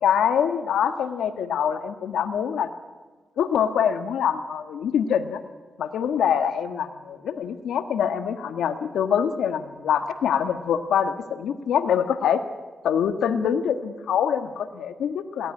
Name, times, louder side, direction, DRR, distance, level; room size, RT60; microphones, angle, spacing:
voice 1, 0.0-2.7 3.4-5.4 5.8-12.4 12.8-15.5, left 8 dB, 90° left, 9 dB, 1.5 m, -24 dB
22.0 x 17.5 x 9.7 m, 1.4 s
cardioid pair, 60°, 0 cm